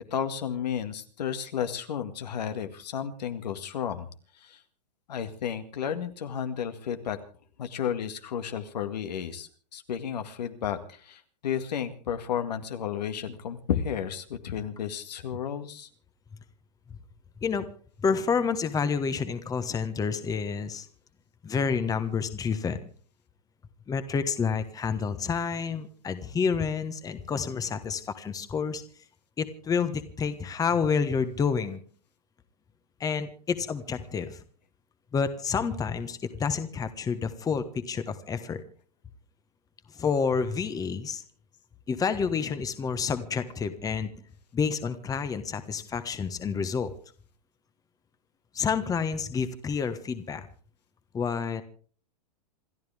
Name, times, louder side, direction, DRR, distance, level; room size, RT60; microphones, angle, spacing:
voice 1, 0.1-4.1 4.4-4.6 5.1-7.2 7.6-15.9, left 8 dB, 75° left, 8 dB, 2.1 m, -32 dB
voice 2, 18.0-20.9 21.4-22.9 23.9-28.8 29.4-31.8 33.0-34.4 35.1-38.6 39.9-41.2 41.9-44.1 44.5-46.9 48.5-50.5 51.1-51.6, left 6 dB, 15° left, 11 dB, 1.3 m, -29 dB
28.0 x 12.5 x 3.6 m, 0.43 s
hypercardioid pair, 120°, 21 cm